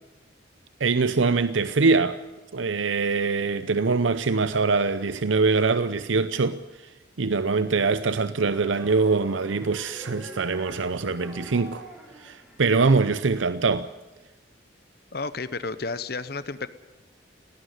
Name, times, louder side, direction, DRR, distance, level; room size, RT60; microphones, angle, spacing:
voice 1, 0.8-2.2 2.5-6.9 7.2-11.8 12.2-13.9, right 4 dB, 85° right, 0.7 m, -23 dB
sound 1, 8.3-13.5, equal, ahead, 4.2 m, -45 dB
voice 2, 15.1-16.7, left 3 dB, 55° left, 0.9 m, -31 dB
18.0 x 18.0 x 9.3 m
head